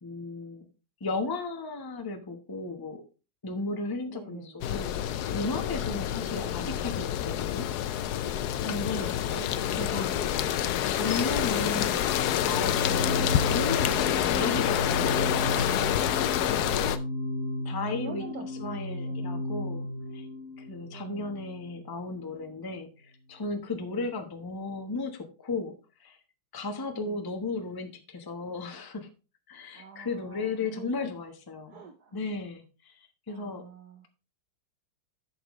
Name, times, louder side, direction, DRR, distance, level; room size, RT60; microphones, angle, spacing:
voice 1, 0.0-0.7 1.0-3.0 3.4-7.7 8.6-10.2 10.8-12.0 12.4-16.0 17.6-19.9 20.1-20.3 20.6-26.2 26.5-29.1 29.5-31.8 32.1-32.9 33.3-33.6, left 3 dB, 20° left, 5 dB, 0.6 m, -35 dB
voice 2, 4.1-4.7 6.2-6.8 8.9-10.5 12.9-13.2 17.7-19.4 20.9-21.5 23.9-24.1 26.9-27.2 29.7-30.9 31.7-32.2 33.3-34.1, right 8 dB, 60° right, 6 dB, 1.2 m, -47 dB
sound 1, 4.6-17.0, left 11 dB, 90° left, 0.8 m, -27 dB
sound 2, 11.1-22.0, left 1 dB, 65° left, 3.0 m, -35 dB
11.5 x 6.9 x 3.2 m, 0.32 s
omnidirectional pair, 2.4 m